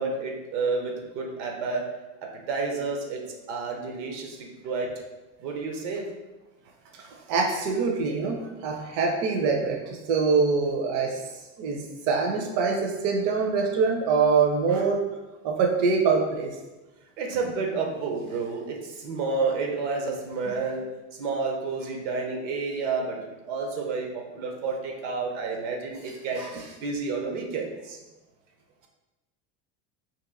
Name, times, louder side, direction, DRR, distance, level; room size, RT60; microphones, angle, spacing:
voice 1, 0.0-1.9 2.2-5.0 5.4-6.1 14.7-14.8 17.2-28.0, right 4 dB, 85° right, 2 dB, 0.8 m, -30 dB
voice 2, 7.0-11.2 11.6-15.0 15.4-16.5 20.5-20.6, right 4 dB, 55° right, 1 dB, 0.6 m, -24 dB
3.0 x 2.7 x 3.7 m, 1.1 s
supercardioid pair, 135°, 36 cm